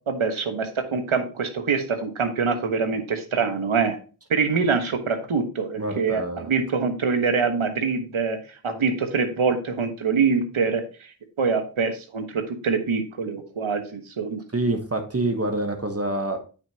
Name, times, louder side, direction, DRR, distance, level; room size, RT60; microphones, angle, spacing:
voice 1, 0.1-4.0 4.3-8.4 8.6-11.1 11.4-14.4, right 5 dB, 80° right, 6 dB, 1.3 m, -24 dB
voice 2, 5.8-6.5 14.5-16.4, right 2 dB, 30° right, 5 dB, 1.1 m, -26 dB
8.2 x 6.4 x 2.8 m, 0.35 s
wide cardioid pair, 65°, 47 cm